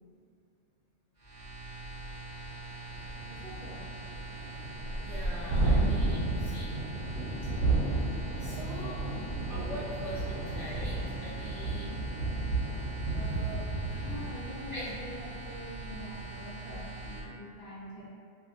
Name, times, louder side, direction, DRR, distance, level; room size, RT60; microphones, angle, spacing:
sound 1, 1.2-17.2, right 2 dB, 15° right, 1.0 m, -43 dB
Thunderstorm, 2.0-2.1 2.5-2.6 2.9-16.5, right 2 dB, 80° right, 1.0 m, -33 dB
voice 1, 3.3-3.9 13.9-18.1, left 1 dB, 60° left, -6 dB, 0.7 m, -45 dB
voice 2, 5.0-6.7 8.4-9.0 9.5-11.9 13.1-13.6 14.7-14.9, equal, 60° right, -10 dB, 0.3 m, -43 dB
2.5 x 2.3 x 2.5 m, 2.2 s
omnidirectional pair, 1.2 m